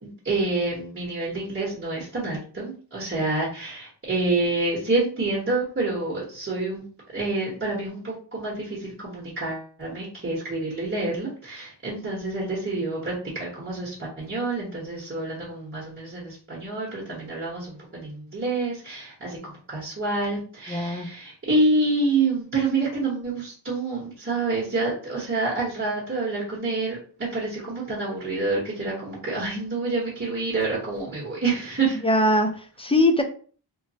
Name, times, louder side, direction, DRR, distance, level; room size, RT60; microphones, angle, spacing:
voice 1, 0.0-6.8 7.1-32.0, right 3 dB, 30° right, -5 dB, 1.0 m, -27 dB
voice 2, 20.7-21.1 32.0-33.2, left 1 dB, 15° left, 5 dB, 0.4 m, -21 dB
3.0 x 2.1 x 2.7 m, 0.41 s
wide cardioid pair, 85°, 42 cm